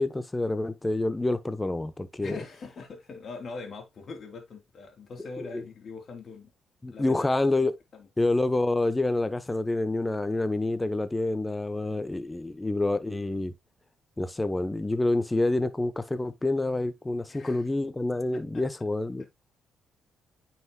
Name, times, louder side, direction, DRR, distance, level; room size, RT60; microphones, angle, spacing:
voice 1, 0.0-2.4 5.4-5.6 6.8-7.7 8.2-13.5 14.2-19.2, left 2 dB, 15° left, 1.0 m, -27 dB
voice 2, 2.2-6.5 6.9-7.3 7.9-8.1 17.3-17.6 18.3-18.6 19.2-19.3, left 4 dB, 50° left, 3.4 m, -42 dB
9.3 x 5.8 x 2.4 m
cardioid pair, 90°, 0 cm